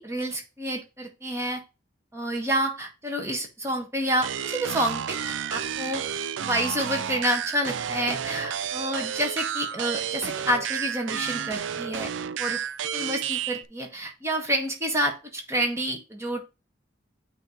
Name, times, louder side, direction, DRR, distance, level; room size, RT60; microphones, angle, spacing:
voice 1, 0.0-1.6 2.1-6.0 6.4-12.1 12.4-12.6 12.9-16.5, right 1 dB, 15° right, 2 dB, 1.5 m, -29 dB
sound 1, 4.2-13.7, right 8 dB, 80° right, 0.4 m, -31 dB
8.9 x 3.0 x 3.8 m, 0.28 s
head